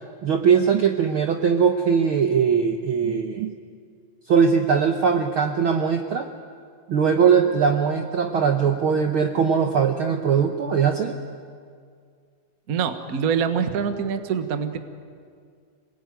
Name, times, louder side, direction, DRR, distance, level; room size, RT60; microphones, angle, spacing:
voice 1, 0.2-3.5 4.3-6.3 6.9-11.2, right 6 dB, 65° right, 5 dB, 1.4 m, -20 dB
voice 2, 12.7-14.8, right 7 dB, 45° right, 8 dB, 1.1 m, -25 dB
27.0 x 19.5 x 9.4 m, 2.2 s
omnidirectional pair, 3.5 m